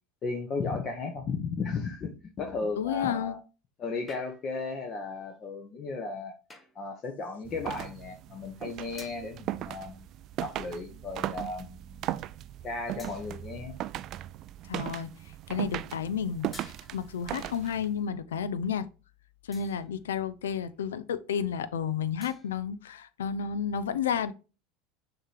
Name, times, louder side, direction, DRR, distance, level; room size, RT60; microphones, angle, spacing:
voice 1, 0.2-2.1 2.4-3.4 3.8-6.3 6.7-10.1 10.4-12.2 12.6-13.7, left 4 dB, 40° left, 1.1 m, -35 dB
voice 2, 2.8-3.4 14.7-15.1 15.5-18.9 19.5-24.3, left 7 dB, 80° left, 0.5 m, -31 dB
sound 1, 4.1-4.7 6.5-6.9 9.0-9.4 10.5-10.9 11.6-11.7 13.0-13.6 16.5-17.3 19.5-20.0 22.2-22.7, left 2 dB, 15° left, 1.3 m, -52 dB
sound 2, 7.4-18.0, right 13 dB, 50° right, 0.3 m, -38 dB
6.4 x 3.0 x 4.9 m
hypercardioid pair, 75°, 0 cm